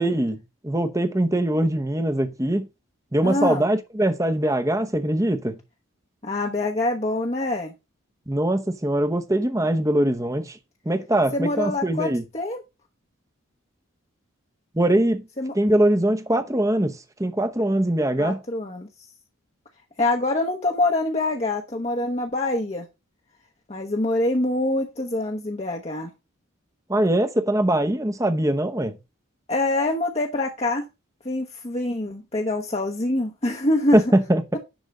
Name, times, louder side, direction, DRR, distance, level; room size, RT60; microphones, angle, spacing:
voice 1, 0.0-2.7 3.1-5.6 8.3-10.6 10.8-12.2 14.7-15.3 15.5-18.4 26.9-29.0 33.9-34.4, right 1 dB, 15° right, 0.9 m, -22 dB
voice 2, 3.2-3.6 6.2-7.7 11.3-12.6 15.4-15.5 18.2-18.9 20.0-22.9 23.7-26.1 29.5-30.8 31.2-34.0, left 2 dB, 30° left, 1.0 m, -25 dB
10.5 x 3.6 x 6.5 m
head